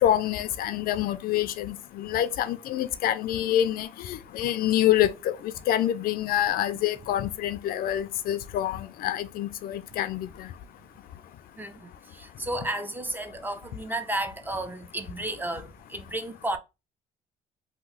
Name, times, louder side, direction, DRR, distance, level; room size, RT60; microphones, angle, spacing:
voice 1, 0.0-5.3 5.7-10.5, left 12 dB, 60° left, 0.4 m, -26 dB
voice 2, 12.1-16.6, right 1 dB, 10° right, 0.5 m, -32 dB
2.9 x 2.0 x 3.9 m
cardioid pair, 110°, 17 cm